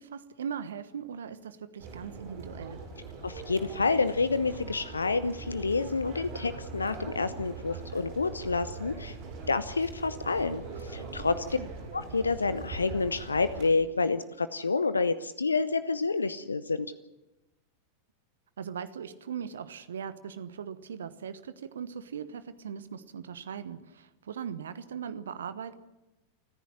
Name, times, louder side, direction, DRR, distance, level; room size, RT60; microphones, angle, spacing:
voice 1, 0.0-2.8 11.5-11.7 18.6-25.8, right 7 dB, 65° right, 14 dB, 1.1 m, -39 dB
sound 1, 1.8-13.7, right 3 dB, 45° right, 7.9 m, -42 dB
voice 2, 3.2-9.2 9.5-11.6 11.9-16.9, left 4 dB, 75° left, 14 dB, 0.7 m, -29 dB
29.5 x 10.5 x 9.6 m, 1.0 s
figure-of-eight pair, 90°, 0 cm